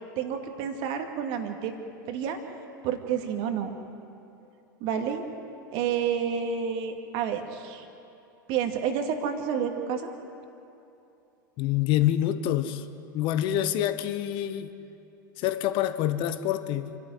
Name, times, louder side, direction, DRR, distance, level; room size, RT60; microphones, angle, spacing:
voice 1, 0.2-1.8 2.1-2.4 2.8-3.8 4.8-5.2 5.7-7.8 8.5-10.1, right 7 dB, 50° right, 5 dB, 2.4 m, -29 dB
voice 2, 11.6-12.8 13.1-14.7 15.4-17.0, left 12 dB, 50° left, 11 dB, 1.2 m, -26 dB
26.5 x 12.5 x 9.5 m, 2.8 s
hypercardioid pair, 90°, 11 cm